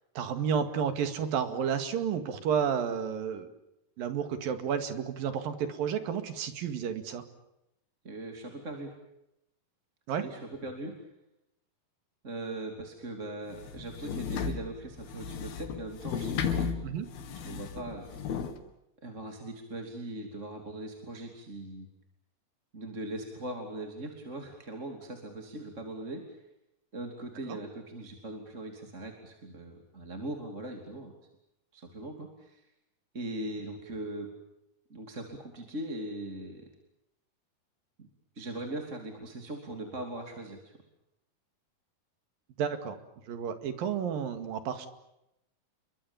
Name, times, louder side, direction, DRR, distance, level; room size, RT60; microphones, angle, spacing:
voice 1, 0.2-3.5 4.0-7.2 10.1-10.3 16.8-17.1 27.5-27.6 42.6-43.0 43.3-44.9, right 7 dB, 70° right, 9 dB, 3.8 m, -31 dB
voice 2, 8.0-8.9 10.2-10.9 12.2-16.7 17.4-18.1 19.0-21.9 22.7-26.4 26.9-31.1 31.7-32.6 33.1-34.3 34.9-36.6 38.0-38.1 38.3-40.7, right 1 dB, 20° right, 3 dB, 2.8 m, -40 dB
sound 1, 13.5-18.6, left 6 dB, 85° left, 4.0 m, -34 dB
29.5 x 23.5 x 7.2 m, 0.84 s
omnidirectional pair, 4.3 m